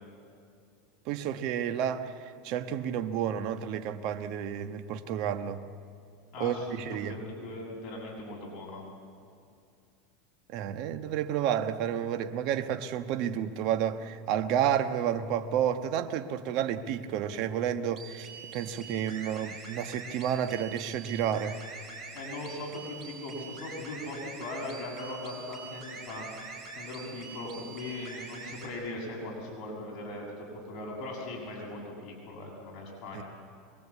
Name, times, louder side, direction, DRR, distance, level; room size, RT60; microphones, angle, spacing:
voice 1, 1.0-5.6 6.4-7.1 10.5-21.6 33.1-33.2, right 9 dB, 55° right, 8 dB, 1.2 m, -31 dB
voice 2, 6.3-8.8 22.1-26.2 26.8-33.2, left 2 dB, 45° left, -1 dB, 6.4 m, -39 dB
sound 1, 18.0-28.7, right 5 dB, 30° right, 5.4 m, -45 dB
23.5 x 21.5 x 8.4 m, 2.5 s
supercardioid pair, 135°, 0 cm